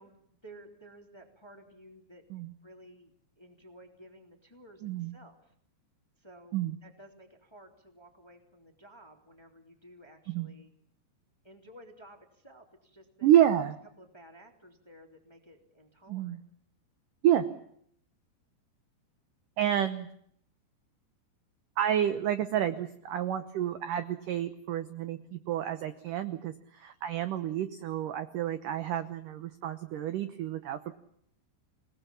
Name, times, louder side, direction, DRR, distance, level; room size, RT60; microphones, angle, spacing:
voice 1, 0.0-2.2 2.6-5.5 6.2-10.7 11.4-13.3 14.0-16.4, right 1 dB, 10° left, 4 dB, 2.2 m, -54 dB
voice 2, 4.8-5.1 6.5-6.8 10.3-10.5 13.2-13.8 16.1-16.4 17.2-17.5 19.6-20.1 21.8-30.9, right 11 dB, 75° right, 10 dB, 1.9 m, -29 dB
28.5 x 19.0 x 7.1 m, 0.67 s
omnidirectional pair, 5.2 m